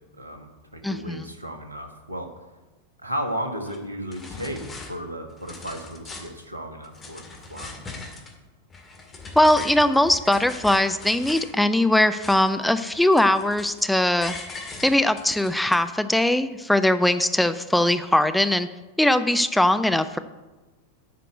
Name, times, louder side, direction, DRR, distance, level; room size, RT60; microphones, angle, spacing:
voice 1, 0.2-2.3 3.0-7.2 7.5-7.8, equal, 80° right, 4 dB, 1.4 m, -34 dB
voice 2, 0.8-1.3 9.4-14.3 14.8-18.7 19.0-20.2, left 1 dB, 5° left, 10 dB, 0.5 m, -20 dB
sound 1, 3.6-3.8 4.1-4.9 5.3-6.4 6.8-8.3 8.7-11.5 11.9-12.6 12.9-13.9 14.2-15.7, left 3 dB, 20° left, 2.0 m, -40 dB
8.1 x 5.9 x 7.9 m, 1.2 s
figure-of-eight pair, 90°, 0 cm